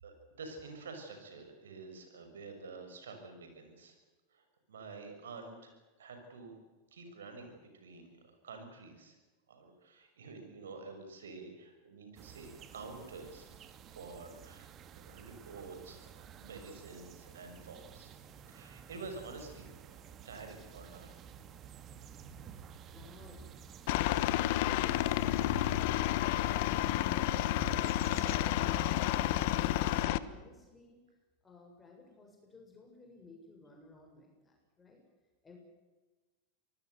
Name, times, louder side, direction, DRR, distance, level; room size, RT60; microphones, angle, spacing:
voice 1, 0.0-3.9 4.3-4.4 4.7-5.7 6.0-6.6 6.9-9.1 9.5-13.5 13.9-14.7 14.9-18.1 18.5-19.7 20.2-21.1, right 3 dB, 80° right, 6 dB, 6.4 m, -48 dB
sound 1, 12.2-30.1, right 8 dB, 35° right, 2.1 m, -50 dB
voice 2, 22.9-23.5 29.8-31.0 31.4-35.0 35.4-35.6, left 2 dB, 15° left, 0 dB, 7.0 m, -57 dB
Aircraft, 23.9-30.2, left 15 dB, 60° left, 1.1 m, -30 dB
26.0 x 19.5 x 8.2 m, 1.2 s
hypercardioid pair, 90°, 0 cm